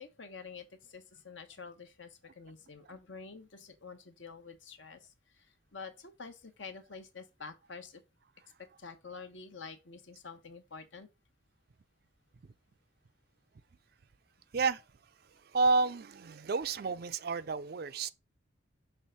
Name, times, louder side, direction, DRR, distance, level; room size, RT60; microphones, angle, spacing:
voice 1, 0.0-8.0 8.8-11.1, left 5 dB, 70° left, 1.1 m, -48 dB
voice 2, 15.5-18.1, right 4 dB, 50° right, 0.4 m, -30 dB
6.3 x 3.4 x 5.5 m
head